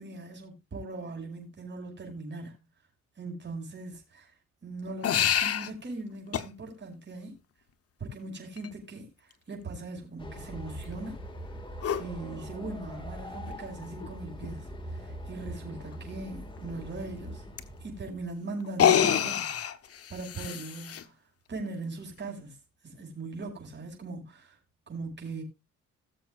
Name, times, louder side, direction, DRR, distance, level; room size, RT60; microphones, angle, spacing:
voice 1, 0.0-2.6 3.2-4.3 4.6-7.3 8.0-11.2 12.0-17.4 17.8-19.4 20.1-21.2 21.5-22.6 22.8-24.6 24.9-25.4, right 3 dB, 35° right, 5.9 m, -40 dB
sound 1, 5.0-5.7 6.3-6.5 8.6-8.7 11.8-12.0 13.5-13.6 14.0-14.1 14.4-14.5 17.6-17.7 18.7-21.0, left 9 dB, 50° left, 1.0 m, -26 dB
Train, 10.2-18.3, equal, 15° left, 2.1 m, -42 dB
19.5 x 7.1 x 2.5 m
cardioid pair, 90°, 30 cm